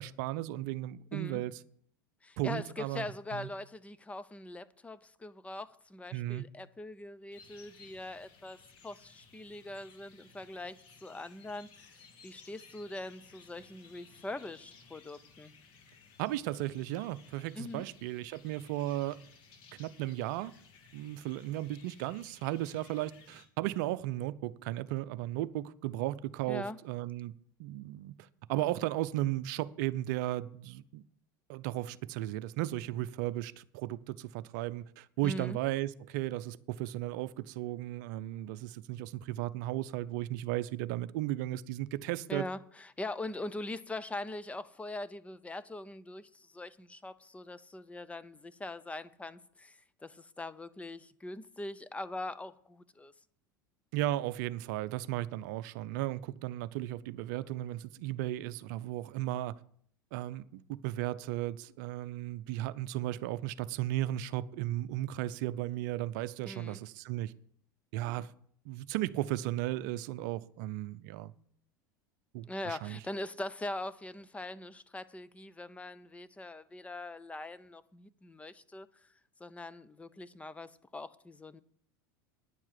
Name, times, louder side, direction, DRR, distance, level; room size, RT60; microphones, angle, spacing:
voice 1, 0.0-1.6 2.4-3.5 6.1-6.4 16.2-19.2 19.7-20.5 20.9-27.3 27.6-31.0 31.5-42.5 53.9-59.6 60.1-67.3 67.9-68.3 68.6-71.3 72.3-73.0, right 15 dB, 60° right, 0.6 m, -35 dB
voice 2, 1.1-1.4 2.2-8.6 8.8-15.6 17.5-17.8 26.5-26.8 35.2-35.6 42.3-53.1 66.4-66.8 72.4-78.9 79.4-81.6, left 2 dB, 10° left, 0.6 m, -42 dB
sound 1, 7.3-23.5, left 5 dB, 50° left, 2.5 m, -58 dB
10.0 x 7.3 x 8.1 m
hypercardioid pair, 85°, 11 cm